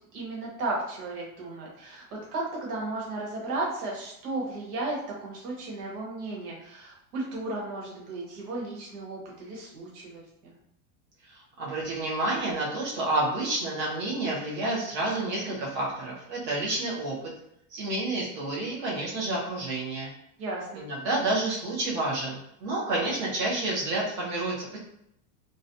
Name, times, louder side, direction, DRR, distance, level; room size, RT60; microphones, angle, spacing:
voice 1, 0.1-10.5 20.4-20.9, right 2 dB, 80° right, -3 dB, 1.1 m, -34 dB
voice 2, 11.6-17.2 17.7-20.1 20.8-24.7, right 2 dB, 25° right, -5 dB, 0.5 m, -29 dB
2.4 x 2.1 x 2.6 m, 0.77 s
supercardioid pair, 175°, 46 cm